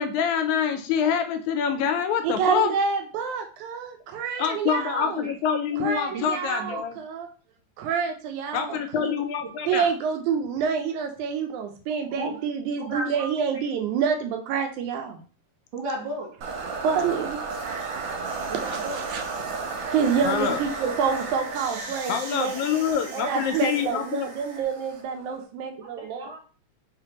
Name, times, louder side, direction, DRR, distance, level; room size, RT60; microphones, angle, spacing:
voice 1, 0.0-2.7 4.4-7.0 8.5-9.9 20.2-20.6 22.1-24.3, left 7 dB, 80° left, 7 dB, 1.9 m, -26 dB
voice 2, 2.2-5.3 5.8-7.3 7.8-9.2 9.7-15.2 16.8-17.4 18.7-18.9 19.1-19.2 19.9-22.6 23.1-26.3, right 6 dB, 90° right, 4 dB, 2.2 m, -27 dB
voice 3, 6.1-6.8 12.1-12.3 12.8-13.6 15.7-16.3 18.5-19.0 22.9-23.4 25.7-26.4, right 1 dB, 50° right, -3 dB, 1.6 m, -35 dB
sound 1, 16.4-25.4, right 4 dB, 70° right, 1.9 m, -34 dB
4.8 x 3.4 x 2.9 m, 0.39 s
omnidirectional pair, 3.4 m